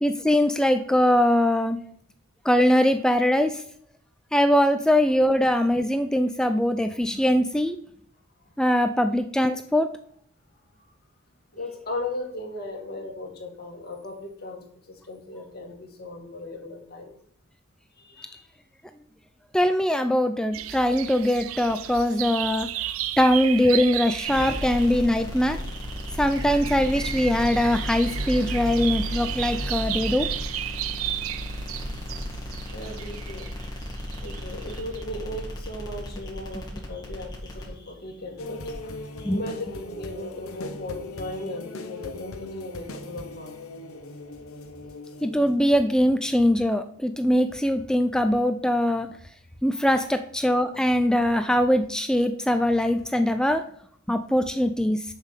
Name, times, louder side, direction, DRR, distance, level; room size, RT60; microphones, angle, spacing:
voice 1, 0.0-1.8 2.5-3.6 4.3-7.8 8.6-9.9 19.5-22.7 23.2-25.6 26.2-30.3 39.3-39.4 45.2-49.1 49.6-53.6 54.1-55.0, equal, 5° left, 8 dB, 0.4 m, -22 dB
voice 2, 11.5-17.1 18.0-18.5 32.7-33.5 34.2-43.6 49.9-50.1, left 1 dB, 45° left, 0 dB, 2.0 m, -37 dB
sound 1, 20.5-35.0, right 12 dB, 70° right, 0.4 m, -34 dB
sound 2, 24.3-41.3, left 1 dB, 20° left, 2.0 m, -35 dB
sound 3, 38.4-46.3 46.8-46.9, left 2 dB, 75° left, 0.9 m, -39 dB
7.0 x 5.5 x 6.6 m, 0.62 s
head